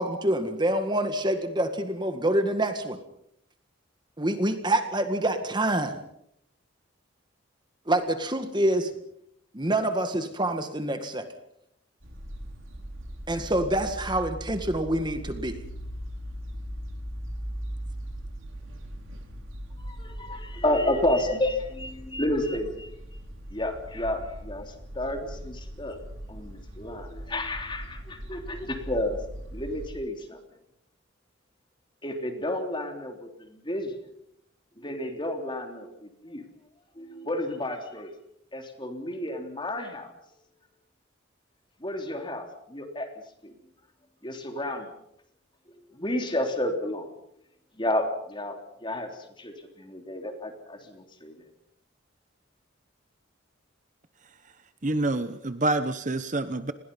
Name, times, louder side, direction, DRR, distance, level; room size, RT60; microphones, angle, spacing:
voice 1, 0.0-3.0 4.2-6.0 7.9-8.9 9.5-11.3 13.3-15.6, right 1 dB, 20° right, 7 dB, 1.9 m, -26 dB
sound 1, 12.0-29.9, equal, 85° right, 5.6 m, -39 dB
voice 2, 19.8-22.9 23.5-26.0 26.3-29.2 29.5-30.4 32.0-33.9 34.8-36.5 37.0-38.1 38.5-40.1 41.8-43.1 43.4-43.5 44.2-44.9 45.9-47.1 47.8-49.1 49.4-51.4, left 1 dB, 25° left, 4 dB, 3.5 m, -31 dB
voice 3, 54.8-56.7, right 2 dB, 40° right, 11 dB, 1.0 m, -27 dB
29.5 x 21.0 x 5.6 m, 0.76 s
head